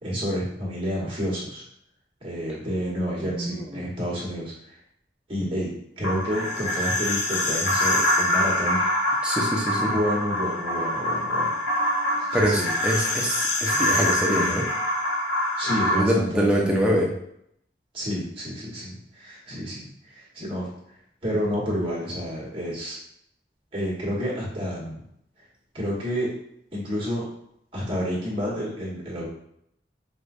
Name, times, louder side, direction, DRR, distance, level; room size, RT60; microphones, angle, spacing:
voice 1, 0.0-1.6 2.2-4.7 5.3-8.8 9.8-11.5 12.5-12.7 15.6-17.0 17.9-20.7 21.2-23.0 23.7-25.1 25.7-26.3 26.7-27.2 27.7-29.3, equal, 30° right, -7 dB, 1.3 m, -29 dB
voice 2, 3.2-3.8 9.2-9.9 12.3-14.7 15.9-17.1, equal, 5° right, -2 dB, 0.6 m, -24 dB
sound 1, 6.0-16.0, left 1 dB, 75° left, 0.7 m, -25 dB
4.8 x 2.2 x 2.5 m, 0.73 s
head